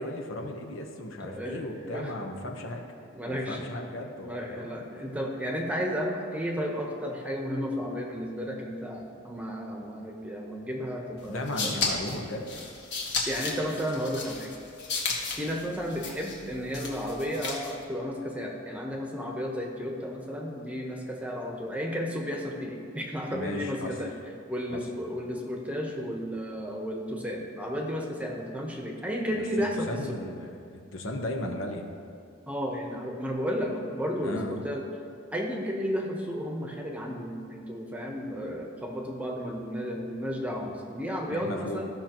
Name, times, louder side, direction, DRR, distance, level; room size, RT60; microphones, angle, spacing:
voice 1, 0.0-2.8 3.2-4.8 11.3-12.5 23.3-23.9 24.7-24.8 29.3-29.4 29.9-31.9 34.2-34.6 41.3-41.8, left 1 dB, 80° left, 2 dB, 1.0 m, -36 dB
voice 2, 1.2-2.1 3.1-3.8 4.2-11.8 13.3-14.5 15.4-24.1 24.5-30.2 32.5-34.8 35.3-41.9, equal, 5° right, 0 dB, 0.9 m, -33 dB
sound 1, 11.2-17.8, left 4 dB, 60° left, 1.6 m, -34 dB
15.5 x 5.8 x 3.0 m, 2.4 s
head